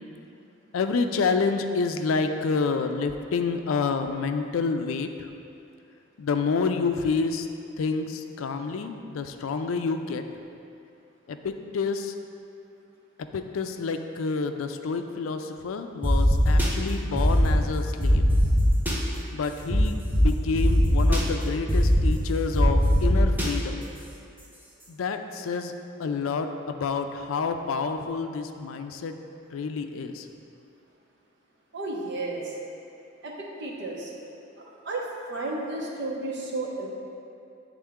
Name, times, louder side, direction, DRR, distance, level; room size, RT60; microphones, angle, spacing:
voice 1, 0.7-5.1 6.2-7.5 7.8-10.2 11.3-12.1 13.3-18.2 19.3-23.8 24.9-25.7 26.0-29.1 29.5-30.3, left 4 dB, 85° left, 7 dB, 0.4 m, -28 dB
sound 1, 16.0-16.7 17.2-17.5 18.0-18.9 19.7-19.8 20.1-20.2 20.5-21.2 21.7-22.1 22.5-23.5, equal, 10° right, 0.7 m, -21 dB
voice 2, 31.7-32.5 33.2-34.1 34.8-36.9, right 2 dB, 60° right, -3 dB, 1.0 m, -32 dB
8.8 x 3.6 x 3.6 m, 2.6 s
head